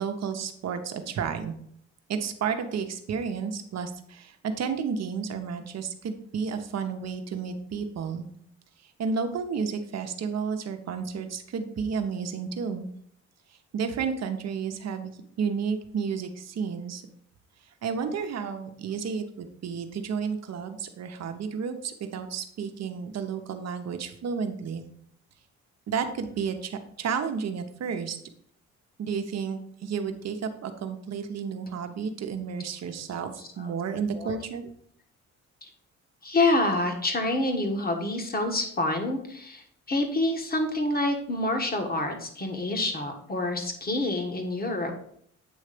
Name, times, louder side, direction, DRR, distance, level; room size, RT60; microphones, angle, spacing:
voice 1, 0.0-1.5 2.1-8.3 9.0-12.9 13.7-15.1 15.4-17.0 17.8-24.8 25.9-28.2 29.0-34.7, right 6 dB, 60° right, 6 dB, 0.9 m, -31 dB
voice 2, 33.4-33.7 34.1-34.4 35.6-35.7 36.2-45.0, left 2 dB, 30° left, 4 dB, 1.4 m, -27 dB
8.5 x 3.2 x 5.0 m, 0.66 s
cardioid pair, 90°, 30 cm